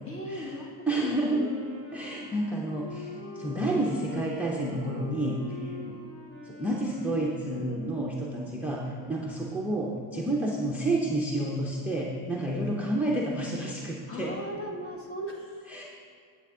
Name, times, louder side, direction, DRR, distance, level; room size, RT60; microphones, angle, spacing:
voice 1, 0.0-0.9 1.3-1.5 2.2-2.3 5.6-6.0 7.9-8.1 9.0-9.1 10.1-10.3 12.4-12.7 14.1-15.7, equal, 30° left, 2 dB, 1.1 m, -39 dB
Wind instrument woodwind instrument, 0.9-8.6, left 1 dB, 55° left, 2.4 m, -44 dB
voice 2, 0.9-1.4 1.9-5.7 6.4-14.3 15.7-15.8, right 1 dB, 5° right, -4 dB, 0.5 m, -30 dB
9.0 x 8.2 x 3.6 m, 2.1 s
cardioid pair, 145°, 44 cm